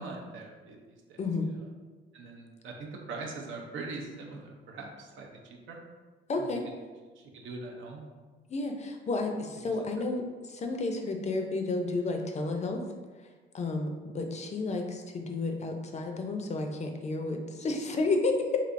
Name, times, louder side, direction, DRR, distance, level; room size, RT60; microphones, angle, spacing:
voice 1, 0.0-1.2 1.6-1.7 2.1-5.4 5.7-5.8 6.4-6.5 7.2-8.0 9.5-9.7, right 3 dB, 80° right, 1 dB, 0.6 m, -42 dB
voice 2, 6.3-6.6 8.5-10.2 10.5-12.8 13.5-13.9 14.1-18.6, left 3 dB, 35° left, 3 dB, 0.4 m, -31 dB
3.2 x 2.6 x 2.5 m, 1.4 s
cardioid pair, 90°, 20 cm